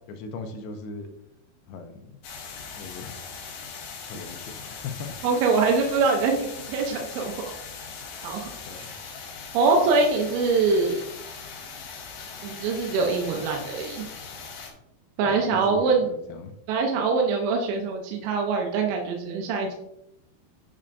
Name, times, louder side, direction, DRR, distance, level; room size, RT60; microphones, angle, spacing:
voice 1, 0.1-1.1 1.7-2.1 2.7-3.2 4.1-5.2 8.7-8.9 15.2-16.5, left 4 dB, 85° left, 6 dB, 2.3 m, -38 dB
sound 1, 2.2-14.7, left 5 dB, 70° left, 2.2 m, -40 dB
voice 2, 5.2-7.5 8.2-8.5 9.5-11.1 12.4-14.1 15.2-16.1 16.7-19.7, right 4 dB, 90° right, 1 dB, 3.2 m, -23 dB
8.8 x 5.5 x 2.5 m, 0.82 s
omnidirectional pair, 5.2 m